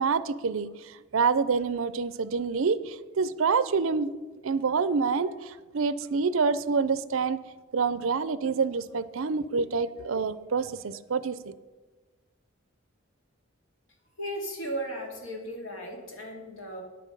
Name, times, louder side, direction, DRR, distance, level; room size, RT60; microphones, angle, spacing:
voice 1, 0.0-4.1 4.4-7.4 7.7-11.5, right 5 dB, 75° right, 16 dB, 0.5 m, -27 dB
voice 2, 14.2-16.8, right 1 dB, 70° left, 1 dB, 2.4 m, -36 dB
9.8 x 8.4 x 5.4 m, 1.3 s
head